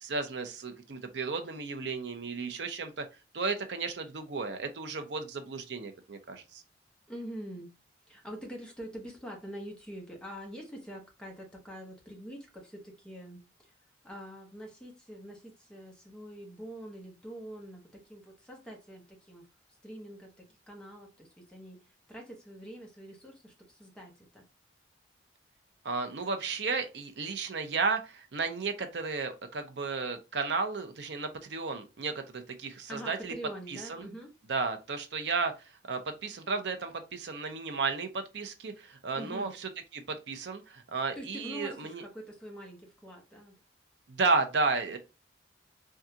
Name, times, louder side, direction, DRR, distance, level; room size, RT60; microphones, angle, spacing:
voice 1, 0.0-3.1 3.3-6.6 25.8-33.3 33.7-34.1 34.5-42.0 44.1-45.0, right 4 dB, 70° right, 0.6 m, -33 dB
voice 2, 7.1-7.7 8.1-13.7 14.0-19.5 19.8-21.8 22.1-24.4 32.9-34.3 39.1-39.5 41.2-43.6, equal, 5° left, 0.8 m, -45 dB
3.6 x 2.3 x 2.7 m
head